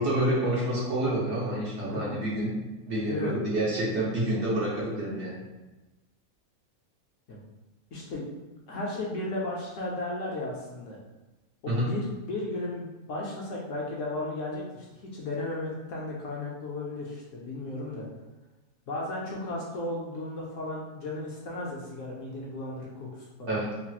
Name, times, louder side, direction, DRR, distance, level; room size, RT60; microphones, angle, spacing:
voice 1, 0.0-2.5 2.9-5.4 11.7-11.9 23.5-23.7, right 1 dB, 55° right, -6 dB, 1.0 m, -28 dB
voice 2, 1.8-2.2 3.0-3.4 7.3-7.4 7.9-8.3 8.7-11.0 11.6-14.9 15.1-18.1 18.9-23.6, left 2 dB, 70° left, -3 dB, 0.9 m, -35 dB
3.2 x 2.8 x 2.3 m, 1.1 s
omnidirectional pair, 1.6 m